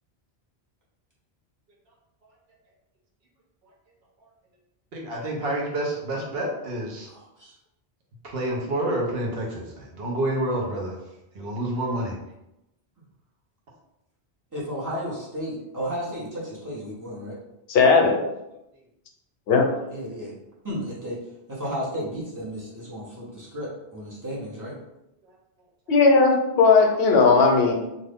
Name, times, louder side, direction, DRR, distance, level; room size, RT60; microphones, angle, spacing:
voice 1, 4.9-7.1 8.2-11.0 11.3-12.2, right 1 dB, 70° right, -2 dB, 0.9 m, -28 dB
voice 2, 7.1-7.5 14.5-17.4 19.9-20.3 20.6-21.2 21.5-24.7, equal, 20° right, -7 dB, 0.8 m, -33 dB
voice 3, 17.7-18.2 19.5-19.7 25.9-27.7, left 4 dB, 70° left, 2 dB, 0.8 m, -17 dB
2.5 x 2.5 x 3.4 m, 0.90 s
omnidirectional pair, 1.1 m